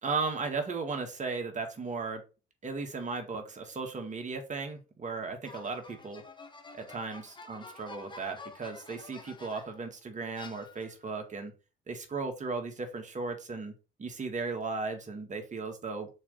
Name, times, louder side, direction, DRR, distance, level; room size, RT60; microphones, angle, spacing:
voice 1, 0.0-2.2 2.6-6.2 6.7-11.5 11.9-13.7 14.0-16.1, right 4 dB, 40° right, 4 dB, 2.0 m, -36 dB
sound 1, 5.4-9.8 10.4-11.1, left 3 dB, 25° left, 1.5 m, -49 dB
6.3 x 3.6 x 5.5 m, 0.32 s
cardioid pair, 90°, 20 cm